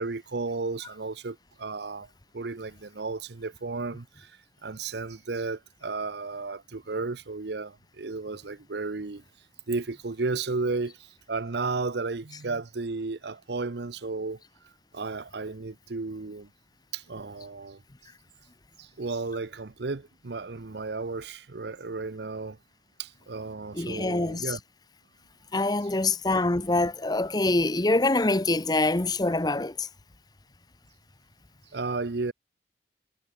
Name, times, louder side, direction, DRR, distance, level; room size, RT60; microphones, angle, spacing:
voice 1, 0.0-2.1 2.3-9.2 9.7-14.4 14.9-16.5 16.9-17.8 18.8-22.6 23.0-24.6 31.7-32.3, right 3 dB, 65° right, 0.7 m, -33 dB
voice 2, 23.7-24.6 25.5-29.9, left 2 dB, 20° left, 0.7 m, -25 dB
head